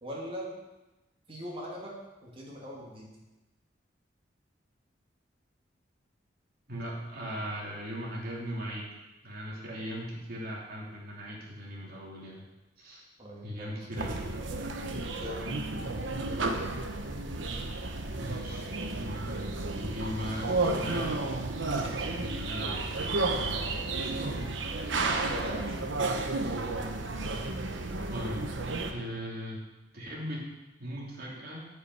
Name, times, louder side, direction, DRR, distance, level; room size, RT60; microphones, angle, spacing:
voice 1, 0.0-0.5 1.3-1.9 2.2-3.1 13.2-13.8 15.0-15.9 25.1-25.8, equal, 30° right, -4 dB, 2.8 m, -40 dB
voice 2, 6.7-8.9 9.2-12.4 12.8-13.1 13.4-14.4 18.1-21.2 22.1-24.4 28.1-28.5 28.9-29.6 29.9-30.5 30.8-31.7, equal, 55° right, -4 dB, 3.1 m, -39 dB
sound 1, 14.0-28.9, right 2 dB, 80° right, 1.0 m, -32 dB
9.7 x 6.0 x 8.0 m, 1.1 s
head